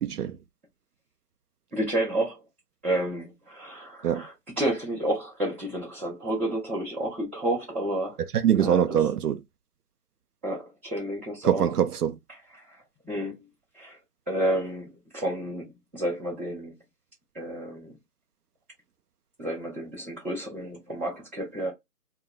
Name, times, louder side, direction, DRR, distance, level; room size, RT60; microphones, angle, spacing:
voice 1, 0.0-0.3 4.0-4.2 8.3-9.4 11.4-12.2, right 9 dB, 70° right, 0.5 m, -23 dB
voice 2, 1.7-2.4 2.8-8.2 8.6-9.0 10.4-11.7 12.5-12.6 13.0-13.4 13.7-14.0 14.3-14.9 15.1-16.7 17.3-17.9 19.4-21.7, right 1 dB, 10° right, 0.8 m, -30 dB
2.2 x 2.2 x 3.6 m
hypercardioid pair, 160°, 47 cm